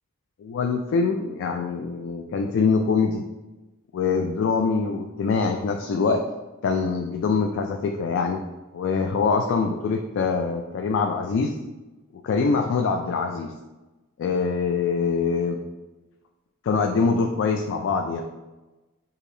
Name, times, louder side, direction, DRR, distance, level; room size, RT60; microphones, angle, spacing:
voice 1, 0.4-3.3 3.9-6.2 6.6-8.4 8.7-11.6 12.2-13.5 14.2-15.6 16.6-18.2, left 4 dB, 60° left, 4 dB, 0.3 m, -24 dB
6.4 x 2.8 x 2.6 m, 1.1 s
head